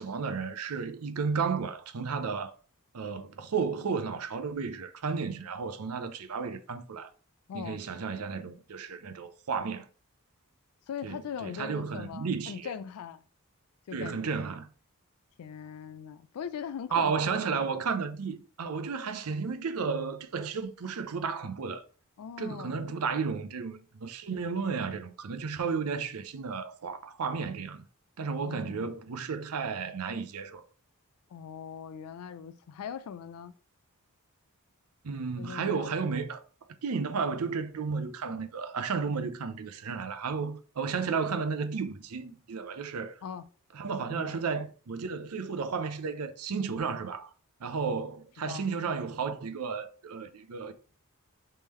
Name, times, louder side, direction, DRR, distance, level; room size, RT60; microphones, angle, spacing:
voice 1, 0.0-2.5 2.9-7.1 7.5-9.9 11.0-12.7 13.9-14.7 16.9-21.8 22.4-27.8 28.2-30.6 35.0-36.4 36.8-43.2 43.7-47.3 47.6-50.7, right 5 dB, 75° right, 0.6 m, -33 dB
voice 2, 7.5-7.8 10.9-13.2 13.9-14.4 15.4-17.8 22.2-22.8 28.4-28.9 31.3-33.5 35.4-36.2 43.2-43.5 44.1-44.4 48.4-48.7, left 7 dB, 70° left, 0.3 m, -41 dB
3.6 x 3.3 x 4.3 m
head